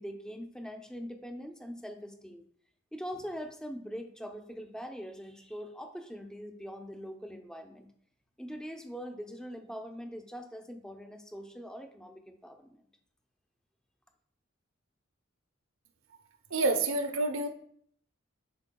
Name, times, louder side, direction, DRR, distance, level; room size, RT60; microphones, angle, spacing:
voice 1, 0.0-2.4 2.9-7.9 8.4-12.8, equal, 5° left, 4 dB, 0.5 m, -42 dB
voice 2, 16.5-17.5, right 2 dB, 80° right, 7 dB, 0.8 m, -28 dB
10.5 x 4.5 x 2.3 m, 0.64 s
head